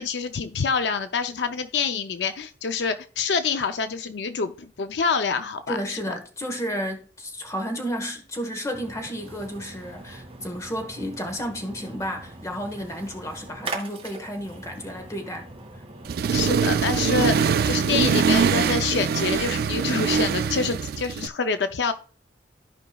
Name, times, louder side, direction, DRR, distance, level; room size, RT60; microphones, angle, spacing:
voice 1, 0.0-6.0 16.3-21.9, left 5 dB, 70° left, 0.5 m, -26 dB
voice 2, 5.7-15.8, equal, 20° left, 1.3 m, -32 dB
Splash splatter, 8.7-17.4, right 3 dB, 35° right, 1.7 m, -41 dB
Accelerating revving vroom, 16.1-21.3, right 6 dB, 60° right, 0.3 m, -23 dB
14.5 x 5.1 x 2.3 m
head